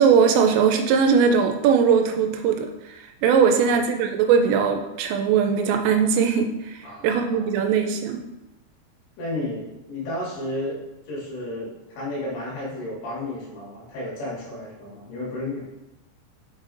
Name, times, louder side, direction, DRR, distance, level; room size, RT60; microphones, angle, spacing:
voice 1, 0.0-8.2, right 6 dB, 85° right, 4 dB, 2.7 m, -20 dB
voice 2, 6.8-7.6 9.2-10.8 11.1-15.6, left 1 dB, 75° left, -6 dB, 4.1 m, -32 dB
6.4 x 6.4 x 2.5 m, 0.98 s
omnidirectional pair, 5.3 m